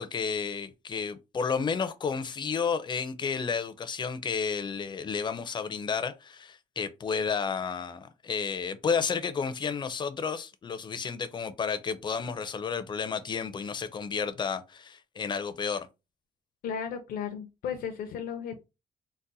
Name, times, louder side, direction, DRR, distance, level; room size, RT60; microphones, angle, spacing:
voice 1, 0.0-15.9, left 6 dB, 30° left, 0.4 m, -31 dB
voice 2, 16.6-18.6, left 7 dB, 85° left, 0.5 m, -35 dB
4.0 x 2.1 x 2.6 m
cardioid pair, 135°, 15 cm